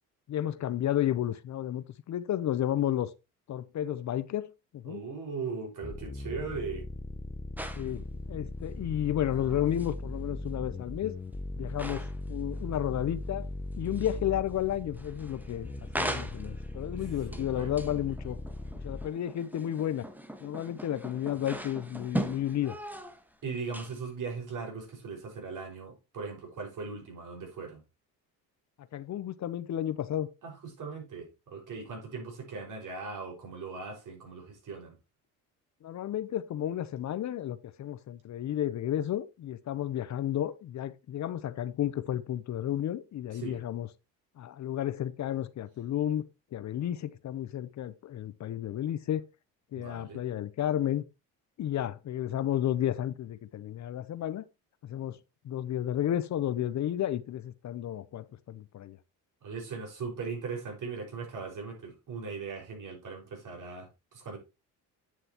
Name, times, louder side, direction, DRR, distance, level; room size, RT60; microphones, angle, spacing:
voice 1, 0.3-3.1 3.5-5.0 7.8-11.2 11.6-13.5 13.8-15.7 15.9-18.4 18.8-20.1 20.4-22.8 28.9-30.3 35.8-43.9 44.4-46.2 46.5-49.2 49.7-51.0 51.6-54.4 54.8-55.2 55.4-59.0, left 11 dB, 45° left, 0.7 m, -32 dB
voice 2, 4.9-6.8 17.3-17.7 23.4-27.8 30.4-35.0 43.3-43.6 49.8-50.2 59.4-64.4, right 4 dB, 50° right, 5.4 m, -39 dB
sound 1, 5.8-19.1, left 2 dB, 15° left, 0.8 m, -39 dB
sound 2, 7.6-8.0 9.2-9.9 10.6-10.7 11.8-12.3 12.5-13.0 13.3-14.3 14.6-23.3 23.6-24.2, right 1 dB, 5° right, 1.4 m, -40 dB
9.4 x 7.8 x 2.9 m
cardioid pair, 95°, 38 cm